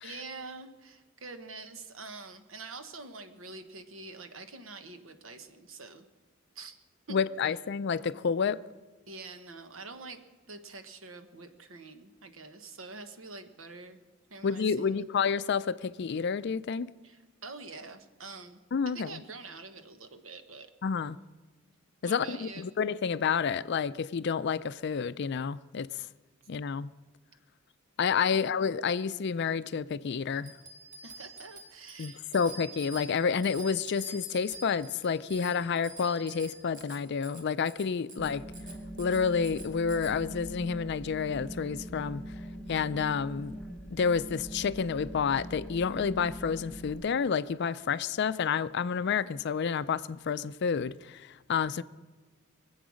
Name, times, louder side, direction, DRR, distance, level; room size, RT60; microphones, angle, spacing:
voice 1, 0.0-6.1 6.5-6.8 7.1-7.2 7.4-7.5 9.1-10.2 10.5-14.0 14.3-15.0 17.0-20.7 22.0-22.7 28.3-28.4 31.0-32.4, right 3 dB, 75° right, 1.2 m, -46 dB
voice 2, 7.1-8.6 14.4-16.9 18.7-19.2 20.8-21.2 22.0-25.9 26.5-26.9 28.0-30.5 32.0-38.4 39.0-42.2 42.7-43.6 43.9-51.8, left 6 dB, 55° left, 0.4 m, -29 dB
Bicycle bell, 30.4-40.1, right 2 dB, 40° right, 2.2 m, -47 dB
sound 1, 38.2-46.9, equal, 5° left, 1.4 m, -42 dB
24.0 x 8.0 x 6.3 m
head